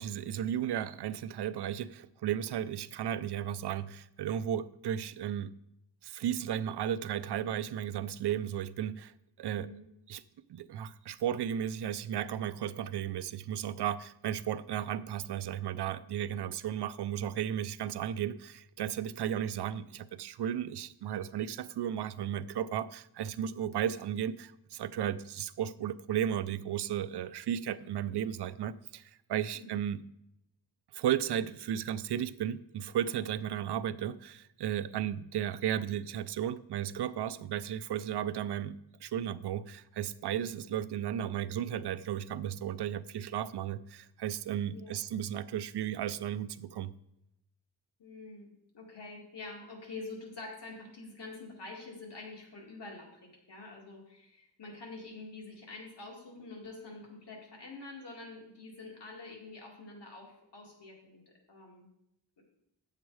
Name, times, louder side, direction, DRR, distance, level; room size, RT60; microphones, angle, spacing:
voice 1, 0.0-5.5 6.0-9.7 10.1-10.2 10.5-30.0 30.9-38.8 39.0-46.9, right 10 dB, 75° right, 13 dB, 0.5 m, -34 dB
voice 2, 9.5-9.8 29.5-29.8 34.9-35.0 40.5-40.6 44.6-45.0 48.0-61.2 61.5-61.9 62.4-62.5, left 3 dB, 90° left, -1 dB, 2.3 m, -47 dB
9.0 x 7.4 x 4.7 m, 0.80 s
wide cardioid pair, 100°, 40 cm